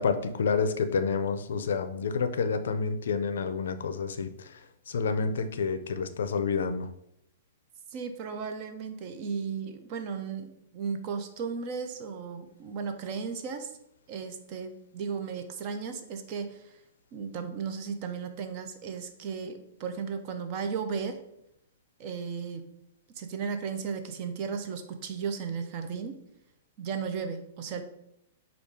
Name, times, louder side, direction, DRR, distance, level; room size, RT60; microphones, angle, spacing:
voice 1, 0.0-4.6 4.9-6.9, left 5 dB, 75° left, 9 dB, 0.4 m, -29 dB
voice 2, 7.9-13.7 14.1-16.7 17.1-21.2 22.0-22.7 23.2-26.2 26.8-27.8, right 6 dB, 25° right, 6 dB, 0.3 m, -35 dB
5.0 x 2.3 x 3.6 m, 0.77 s
hypercardioid pair, 180°, 0 cm